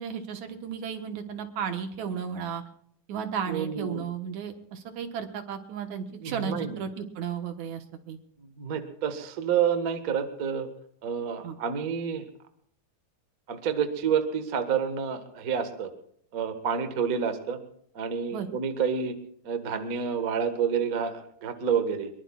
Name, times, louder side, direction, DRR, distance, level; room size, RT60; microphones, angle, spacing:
voice 1, 0.0-2.6 3.1-8.2 11.4-11.6 18.3-18.5, right 7 dB, 70° right, 6 dB, 2.4 m, -34 dB
voice 2, 3.5-4.0 6.2-6.8 8.6-10.7 11.0-12.2 13.5-15.9 16.3-17.6 17.9-19.1 19.4-22.1, right 7 dB, 45° right, 7 dB, 1.2 m, -29 dB
23.5 x 22.5 x 2.4 m, 0.66 s
omnidirectional pair, 3.8 m